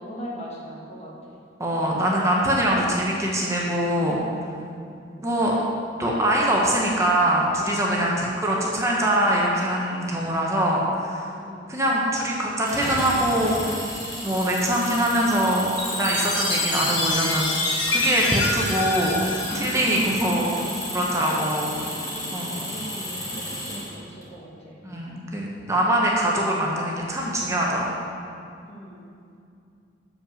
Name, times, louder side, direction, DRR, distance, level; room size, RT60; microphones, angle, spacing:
voice 1, 0.0-1.4 4.8-5.2 11.4-11.8 21.7-24.8 28.7-29.1, equal, 35° left, -4 dB, 1.3 m, -40 dB
voice 2, 1.6-4.2 5.2-5.5 6.0-11.3 11.7-13.8 14.2-19.2 19.5-20.6 20.9-21.8 22.3-22.6 24.8-27.9, right 1 dB, 15° right, -3 dB, 0.7 m, -23 dB
Engine, 12.6-24.2, equal, 20° left, 1.5 m, -33 dB
Chime, 15.8-20.3, left 2 dB, 80° left, 1.2 m, -26 dB
7.1 x 5.1 x 5.0 m, 2.5 s
head